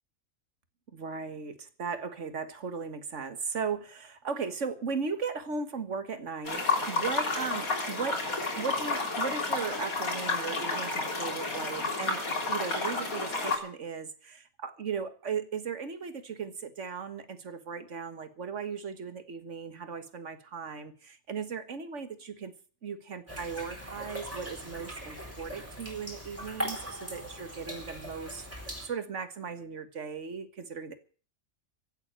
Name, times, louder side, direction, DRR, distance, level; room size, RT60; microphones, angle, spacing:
voice 1, 0.9-22.5 22.8-31.0, right 5 dB, 60° right, 10 dB, 1.9 m, -37 dB
sound 1, 6.4-13.6, left 3 dB, 90° left, 3.8 m, -31 dB
sound 2, 23.3-28.9, equal, 10° right, 4.2 m, -40 dB
16.0 x 8.1 x 8.7 m, 0.41 s
omnidirectional pair, 1.4 m